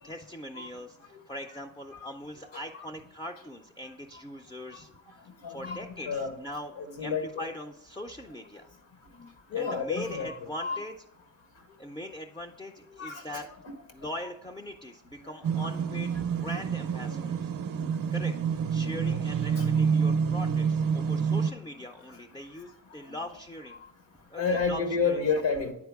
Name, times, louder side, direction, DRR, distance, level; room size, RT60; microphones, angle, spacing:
voice 1, 0.0-4.9 5.5-8.7 9.5-10.9 11.8-13.5 13.9-17.5 18.1-18.3 18.7-23.8 24.3-25.2, left 1 dB, 10° left, 2 dB, 0.3 m, -41 dB
voice 2, 5.4-6.3 6.8-7.4 9.2-10.8 13.0-13.4 15.6-15.7 17.1-17.2 17.7-17.8 19.0-19.2 19.6-19.7 24.3-25.7, left 5 dB, 70° left, 6 dB, 1.4 m, -31 dB
sound 1, 15.4-21.5, right 6 dB, 50° right, 0.5 m, -28 dB
9.5 x 4.4 x 3.5 m, 0.88 s
wide cardioid pair, 110°, 46 cm